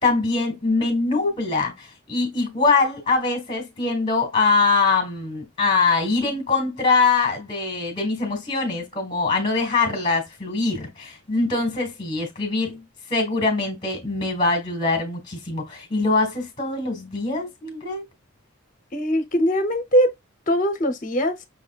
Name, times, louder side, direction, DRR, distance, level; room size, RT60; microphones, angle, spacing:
voice 1, 0.0-12.8 13.1-18.0, left 3 dB, 20° left, 1.7 m, -23 dB
voice 2, 18.9-20.1 20.5-21.4, equal, 40° left, 0.8 m, -21 dB
5.9 x 3.5 x 2.4 m
head